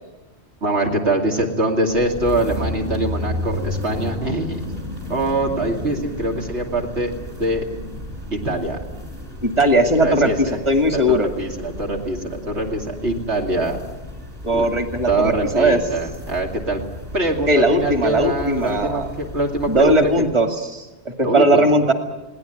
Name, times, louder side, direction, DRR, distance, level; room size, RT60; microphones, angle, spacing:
voice 1, 0.6-4.8 5.1-7.1 7.4-7.6 8.3-8.8 10.0-10.6 10.9-13.8 14.5-14.7 15.1-16.8 17.1-20.3 21.2-21.6, right 2 dB, 75° right, 0 dB, 3.0 m, -23 dB
sound 1, 1.9-20.4, left 1 dB, 55° right, 5.9 m, -33 dB
voice 2, 9.4-11.3 14.4-15.8 17.5-19.1 19.7-20.9 21.2-21.9, right 1 dB, 25° right, 5 dB, 2.2 m, -18 dB
21.5 x 18.0 x 9.3 m, 1.1 s
omnidirectional pair, 1.2 m